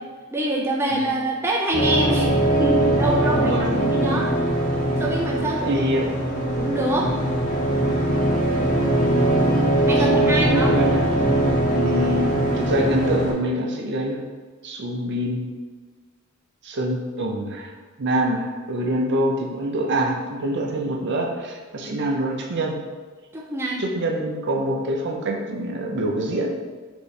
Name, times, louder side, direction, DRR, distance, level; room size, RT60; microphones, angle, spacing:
voice 1, 0.3-3.6 3.9-4.3 5.0-5.8 6.6-7.3 9.9-10.8 23.3-23.8, right 1 dB, 10° right, -3 dB, 0.3 m, -25 dB
sound 1, 1.7-13.3, right 1 dB, 40° left, 0.9 m, -21 dB
voice 2, 3.3-4.2 5.7-6.1 10.0-11.0 11.7-14.2 14.6-15.4 16.6-17.7 18.0-22.8 23.8-26.6, right 1 dB, 55° right, 1 dB, 0.6 m, -25 dB
4.4 x 2.7 x 3.2 m, 1.4 s
head